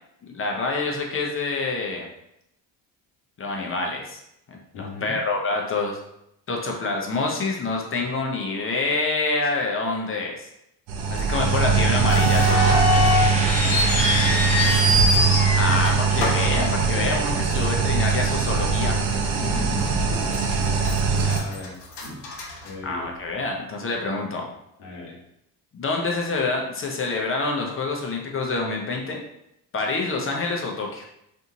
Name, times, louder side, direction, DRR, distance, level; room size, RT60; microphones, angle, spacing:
voice 1, 0.2-2.1 3.4-4.2 4.5-6.0 6.5-10.5 11.1-12.8 15.5-19.0 22.8-24.5 25.7-29.2 29.7-31.1, left 3 dB, 25° left, 0 dB, 0.6 m, -27 dB
voice 2, 4.7-5.1 13.5-14.8 15.5-16.1 19.4-20.2 20.5-20.8 21.1-21.7 22.0-22.2 22.6-23.1 24.0-24.3 24.8-25.2, left 2 dB, 70° left, -3 dB, 1.2 m, -38 dB
sound 1, 10.9-21.4, right 5 dB, 70° right, 0.7 m, -21 dB
sound 2, 12.0-17.4 17.6-17.7 18.5-18.7 19.2-19.3 19.9-20.5 20.8-23.3, left 1 dB, 85° left, 0.7 m, -24 dB
sound 3, 12.9-15.6, right 1 dB, 15° right, 0.7 m, -31 dB
2.6 x 2.5 x 2.7 m, 0.79 s
hypercardioid pair, 60°, 50 cm